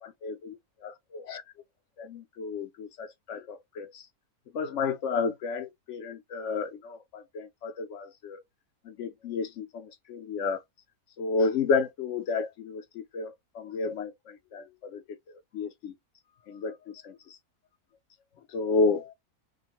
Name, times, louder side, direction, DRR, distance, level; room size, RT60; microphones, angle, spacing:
voice 1, 0.0-1.4 2.0-4.0 4.5-8.4 8.8-10.6 11.2-15.0 15.5-15.9 16.5-17.4 18.5-19.1, left 4 dB, 65° left, 0.8 m, -32 dB
5.0 x 2.1 x 2.9 m
omnidirectional pair, 1.6 m